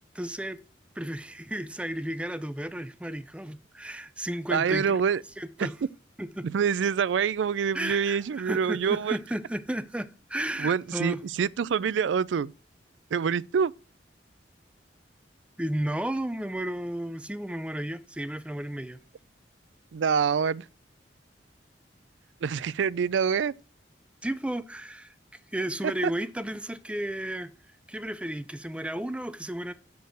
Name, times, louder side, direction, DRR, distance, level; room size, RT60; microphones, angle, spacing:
voice 1, 0.1-0.6 1.0-5.0 5.4-5.7 6.2-6.5 7.7-11.2 15.6-19.0 24.2-25.1 25.5-27.5 27.9-29.7, right 1 dB, 5° right, 0.5 m, -33 dB
voice 2, 4.5-5.2 5.6-5.7 6.4-9.2 10.6-12.5 13.1-13.7 19.9-20.7 22.4-23.5 25.8-25.9, right 6 dB, 90° right, 0.4 m, -26 dB
6.9 x 6.5 x 7.8 m
head